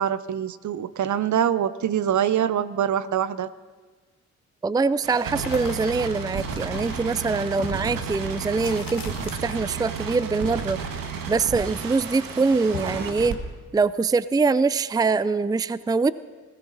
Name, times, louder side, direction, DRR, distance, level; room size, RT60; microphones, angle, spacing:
voice 1, 0.0-3.5, right 9 dB, 55° right, 15 dB, 0.8 m, -24 dB
voice 2, 4.6-9.1 9.4-10.8 11.3-13.4 13.7-16.1, right 4 dB, 10° right, 17 dB, 0.5 m, -23 dB
sound 1, 5.0-13.4, right 6 dB, 70° right, 1.7 m, -32 dB
sound 2, 5.4-9.9 10.1-11.8 12.1-13.1, left 6 dB, 75° left, 2.0 m, -40 dB
21.0 x 16.0 x 4.1 m, 1.4 s
hypercardioid pair, 45°, 34 cm